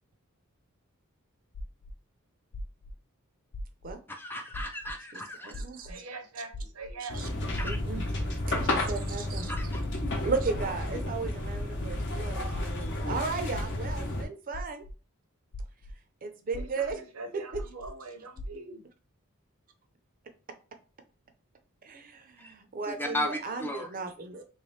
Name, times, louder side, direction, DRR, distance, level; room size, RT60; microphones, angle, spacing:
sound 1, 1.5-1.9 2.5-2.9 3.5-3.9 4.5-4.9 5.5-5.9 6.5-6.9 7.5-7.9 8.5-8.9 9.5-9.9 10.5-10.9 11.5-11.9 12.5-12.9 13.5-13.9 14.5-14.9 15.5-15.9 16.5-16.9 17.5-17.9 18.4-18.5, left 1 dB, 80° left, 0.5 m, -39 dB
voice 1, 4.1-5.6 7.6-7.8 9.6-9.8 23.0-23.9, left 1 dB, 10° left, 0.4 m, -35 dB
voice 2, 5.1-6.0 7.0-7.3 7.6-8.1 8.5-9.7 10.2-14.8 16.2-17.0 17.5-17.6 21.8-24.4, right 4 dB, 40° right, 0.5 m, -36 dB
voice 3, 5.9-7.2 16.5-18.8, right 3 dB, 80° right, 0.8 m, -43 dB
sound 2, 7.1-14.2, left 1 dB, 55° left, 0.9 m, -32 dB
3.1 x 3.0 x 3.1 m
head